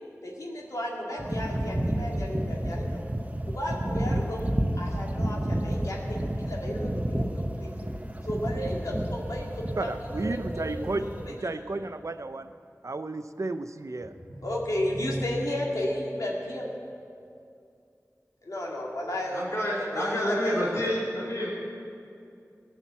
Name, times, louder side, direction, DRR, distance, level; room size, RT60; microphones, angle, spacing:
voice 1, 0.2-3.0 3.5-4.5 4.8-7.7 8.2-11.6 14.2-16.7 18.4-19.4 19.8-20.8, left 1 dB, 85° left, -3 dB, 2.1 m, -33 dB
sound 1, 1.2-11.4, right 1 dB, 25° right, 0.8 m, -31 dB
voice 2, 9.8-12.5 12.8-14.1, right 2 dB, 65° right, 10 dB, 0.6 m, -33 dB
voice 3, 19.3-21.5, equal, 50° left, -7 dB, 3.2 m, -28 dB
17.0 x 5.9 x 8.1 m, 2.5 s
wide cardioid pair, 45°, 6 cm